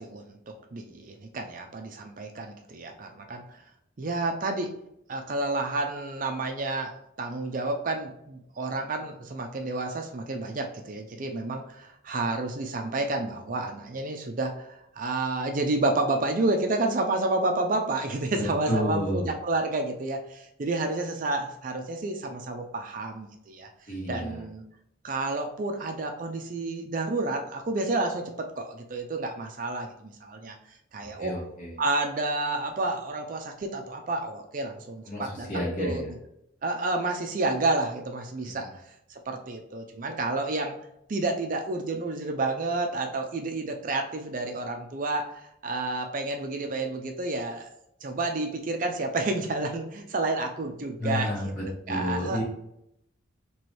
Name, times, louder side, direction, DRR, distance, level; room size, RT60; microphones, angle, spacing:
voice 1, 0.0-3.6 4.0-4.7 5.1-23.7 24.1-24.6 25.0-30.6 30.9-31.3 31.8-35.5 35.8-36.0 36.6-38.7 39.1-40.8 41.1-47.7 48.0-51.5 51.9-52.4, right 2 dB, 40° right, 4 dB, 0.4 m, -30 dB
voice 2, 18.4-19.3 23.9-24.4 31.2-31.8 35.0-36.1 38.4-38.7 51.0-52.4, left 1 dB, 40° left, -4 dB, 1.6 m, -31 dB
4.6 x 3.0 x 3.0 m, 0.79 s
head